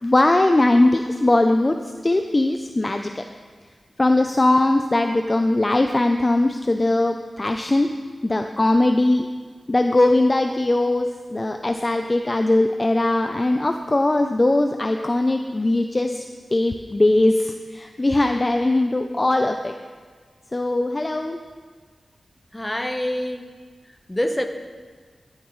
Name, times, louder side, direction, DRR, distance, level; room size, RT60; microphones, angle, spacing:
voice 1, 0.0-3.2 4.0-7.9 8.2-9.3 9.7-16.2 16.5-19.7 20.5-21.4, left 2 dB, 30° left, 5 dB, 0.5 m, -20 dB
voice 2, 22.5-23.5 23.8-24.5, left 1 dB, 15° left, 5 dB, 1.0 m, -26 dB
14.5 x 11.0 x 3.2 m, 1.5 s
wide cardioid pair, 65°, 0 cm